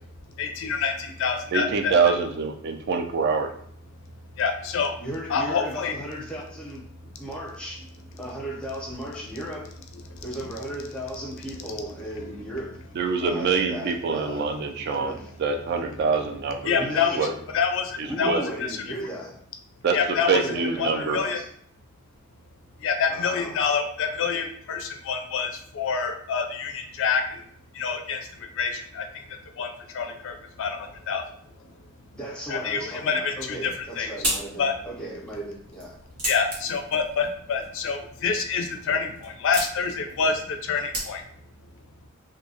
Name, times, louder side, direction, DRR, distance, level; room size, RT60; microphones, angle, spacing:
voice 1, 0.4-1.9 4.4-5.0 5.3-5.9 10.1-10.2 16.7-17.2 17.5-18.4 18.7-18.8 19.9-20.4 20.8-21.4 22.8-27.5 27.7-31.2 32.5-34.1 34.6-34.7 36.2-41.2, left 5 dB, 65° left, 4 dB, 0.4 m, -27 dB
voice 2, 1.5-3.5 13.0-16.9 17.2-17.3 18.2-18.4 19.8-20.0 20.3-21.2, right 5 dB, 50° right, 4 dB, 0.3 m, -25 dB
voice 3, 5.0-6.9 7.1-7.9 8.2-9.7 10.2-12.8 13.2-14.5 14.9-15.3 16.7-17.4 18.0-19.4 20.3-21.5 23.1-23.7 32.1-36.0, equal, 5° left, -4 dB, 0.6 m, -36 dB
sound 1, 33.5-41.5, right 1 dB, 85° right, 1.3 m, -36 dB
2.7 x 2.1 x 2.7 m, 0.65 s
head